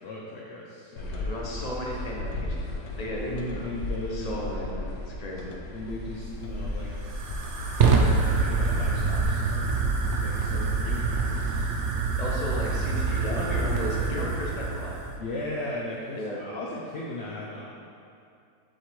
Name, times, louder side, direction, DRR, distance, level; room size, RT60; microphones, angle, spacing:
voice 1, 0.0-1.3 3.3-4.5 5.7-6.9 7.8-9.7 10.0-11.7 15.2-17.6, left 1 dB, 55° left, -4 dB, 0.7 m, -37 dB
sound 1, 1.0-9.2, left 2 dB, 90° left, 1.4 m, -35 dB
voice 2, 1.2-3.7 4.1-5.5 12.2-14.9 16.1-16.4, equal, 25° left, -3 dB, 1.0 m, -34 dB
Fire, 6.2-15.2, right 4 dB, 65° right, 0.7 m, -26 dB
7.8 x 6.7 x 3.2 m, 2.5 s
omnidirectional pair, 1.8 m